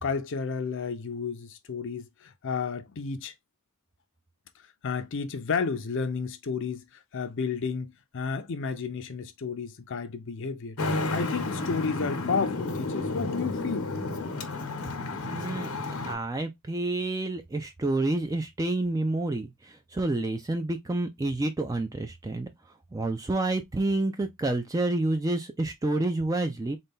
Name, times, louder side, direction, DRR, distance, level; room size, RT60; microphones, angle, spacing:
voice 1, 0.0-3.3 4.8-6.9 7.1-13.9, left 5 dB, 60° left, 0.6 m, -32 dB
Traffic noise roadway noise, 10.8-16.1, left 2 dB, 90° left, 0.9 m, -31 dB
voice 2, 15.3-15.7 16.0-22.5 22.9-26.8, right 2 dB, 15° right, 0.4 m, -29 dB
4.0 x 2.3 x 3.6 m
head